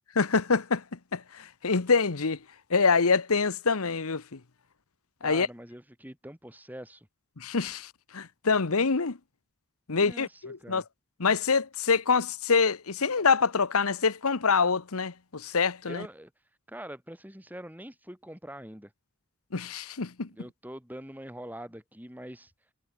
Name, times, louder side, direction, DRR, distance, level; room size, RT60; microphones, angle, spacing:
voice 1, 0.1-0.8 1.1-2.4 2.7-4.2 5.2-5.5 7.4-9.2 9.9-10.8 11.2-16.0 19.5-20.3, left 5 dB, 85° left, 1.1 m, -25 dB
voice 2, 5.2-7.1 9.9-10.9 15.9-16.3 16.7-18.9 20.3-22.5, equal, 10° right, 3.6 m, -44 dB
head